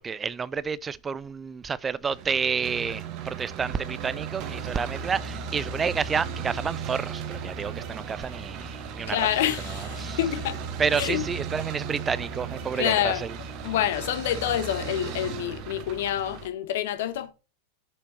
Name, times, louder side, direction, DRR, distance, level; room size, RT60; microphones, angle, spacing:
voice 1, 0.0-9.2 10.0-10.2 10.8-13.3, right 6 dB, 20° right, 0.4 m, -30 dB
sound 1, 2.1-16.5, right 6 dB, 40° right, 1.1 m, -36 dB
voice 2, 9.1-10.6 10.9-11.2 12.7-13.2 13.6-17.3, left 11 dB, 55° left, 1.0 m, -27 dB
7.0 x 5.0 x 4.3 m
figure-of-eight pair, 90°, 0 cm